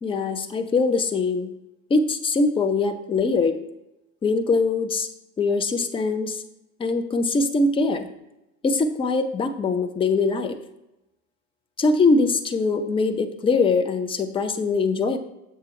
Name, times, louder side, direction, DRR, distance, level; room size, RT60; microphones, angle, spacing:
voice 1, 0.0-1.5 1.9-3.6 4.2-5.1 5.4-6.4 6.8-8.1 8.6-10.6 11.8-15.2, left 3 dB, 10° left, 9 dB, 0.5 m, -22 dB
7.4 x 6.8 x 3.2 m, 0.91 s
figure-of-eight pair, 70°, 48 cm